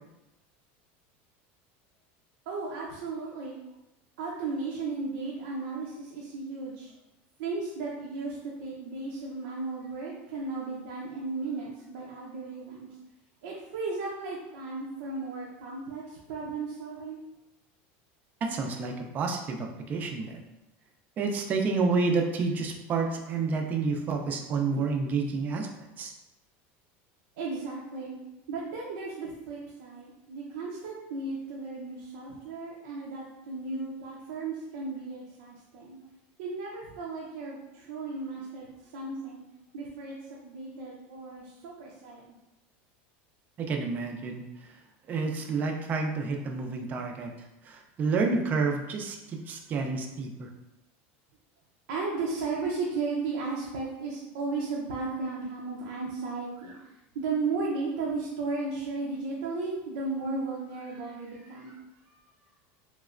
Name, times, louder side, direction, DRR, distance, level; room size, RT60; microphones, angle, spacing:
voice 1, 2.5-3.6 4.2-6.9 7.4-12.9 13.4-17.2 27.4-28.2 28.5-36.0 36.4-39.4 39.7-42.3 51.9-56.8 57.1-61.8 62.0-62.2, right 3 dB, 85° right, -4 dB, 0.6 m, -35 dB
voice 2, 18.4-20.4 21.2-26.1 43.6-44.8 45.1-50.5, right 4 dB, 30° right, 3 dB, 0.4 m, -30 dB
3.1 x 2.9 x 2.4 m, 0.96 s
supercardioid pair, 160°, 6 cm